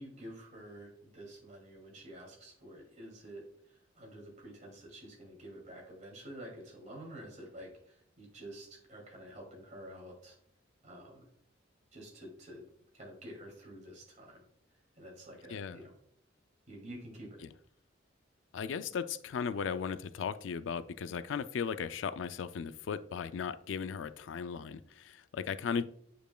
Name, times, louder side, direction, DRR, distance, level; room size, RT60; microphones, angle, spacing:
voice 1, 0.0-10.4 10.8-11.3 11.9-12.6 12.9-14.4 15.0-15.9 16.7-17.4, right 1 dB, 40° right, -1 dB, 2.4 m, -49 dB
voice 2, 18.5-25.8, left 6 dB, 70° left, 14 dB, 0.4 m, -36 dB
8.9 x 5.0 x 2.3 m, 0.70 s
head